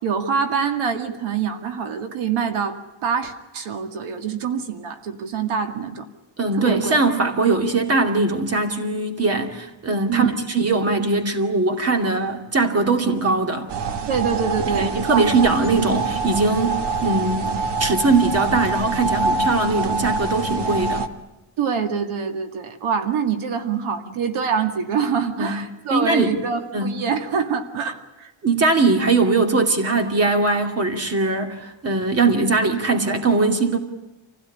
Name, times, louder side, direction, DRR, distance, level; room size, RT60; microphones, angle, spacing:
voice 1, 0.0-6.1 6.6-7.0 10.1-10.3 14.1-15.5 21.6-28.3, right 6 dB, 75° right, 2.2 m, -25 dB
voice 2, 6.4-13.7 14.7-17.5 17.8-21.1 25.4-25.6 25.9-26.3 26.7-27.0 28.4-33.8, right 3 dB, 30° right, 2.5 m, -20 dB
sound 1, 13.7-21.1, right 3 dB, 55° right, 1.5 m, -25 dB
27.5 x 16.5 x 9.9 m
cardioid pair, 175°, 49 cm